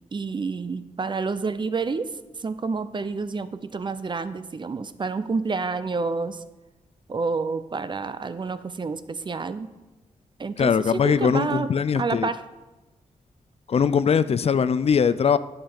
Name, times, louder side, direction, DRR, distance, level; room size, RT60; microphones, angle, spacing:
voice 1, 0.1-2.1 2.4-6.4 7.1-9.7 10.4-11.7 11.9-12.4, right 4 dB, 35° right, 0.5 m, -29 dB
voice 2, 10.6-12.3 13.7-15.4, left 7 dB, 50° left, 0.4 m, -21 dB
10.5 x 5.9 x 5.0 m
cardioid pair, 80°, 13 cm